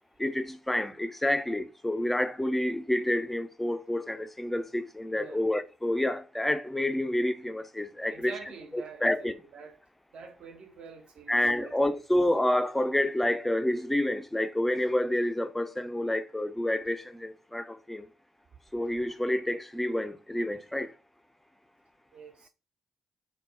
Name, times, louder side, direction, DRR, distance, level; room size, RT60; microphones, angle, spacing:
voice 1, 0.2-8.3 8.7-9.3 11.3-18.1 18.7-20.9, left 1 dB, 10° left, 0.4 m, -29 dB
voice 2, 5.1-5.4 8.1-9.8 10.1-12.0 22.1-22.5, right 5 dB, 50° right, 0.5 m, -47 dB
2.1 x 2.0 x 3.5 m
figure-of-eight pair, 45°, 2 cm